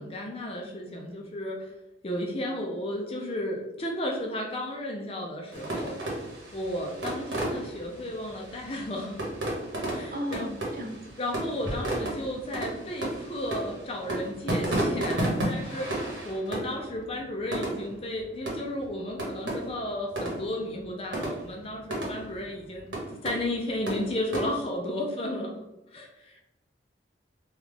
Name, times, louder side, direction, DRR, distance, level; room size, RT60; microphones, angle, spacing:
voice 1, 0.0-1.7 2.0-6.0 6.5-9.2 9.9-10.5 11.2-22.9 23.2-25.6 25.9-26.4, left 1 dB, 30° left, 1 dB, 0.4 m, -33 dB
sound 1, 5.5-24.6, right 1 dB, 80° right, 1.2 m, -33 dB
voice 2, 9.8-11.0, equal, 50° right, 3 dB, 0.5 m, -36 dB
3.4 x 2.3 x 3.5 m, 0.94 s
head